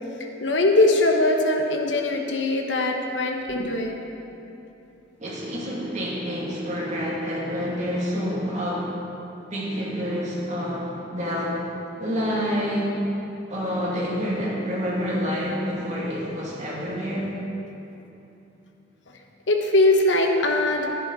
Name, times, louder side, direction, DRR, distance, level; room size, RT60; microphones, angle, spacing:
voice 1, 0.4-3.9 19.5-20.9, left 2 dB, 80° left, 2 dB, 1.1 m, -21 dB
voice 2, 5.2-8.9 9.5-11.6 12.0-12.9 13.5-17.3, equal, 40° right, -6 dB, 2.5 m, -28 dB
11.0 x 10.0 x 4.1 m, 2.9 s
head